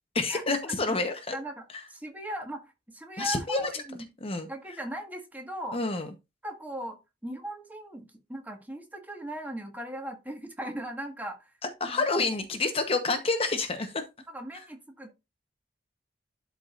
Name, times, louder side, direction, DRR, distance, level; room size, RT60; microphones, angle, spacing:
voice 1, 0.1-1.4 1.7-1.8 3.2-3.8 4.2-4.5 5.7-6.1 11.6-14.0 14.5-14.6, left 3 dB, 35° left, 1.0 m, -28 dB
voice 2, 1.3-1.6 1.9-4.1 4.5-5.8 6.4-7.0 7.2-11.5 11.9-12.3 14.3-15.1, right 1 dB, 10° right, 1.6 m, -38 dB
12.0 x 4.8 x 2.5 m
head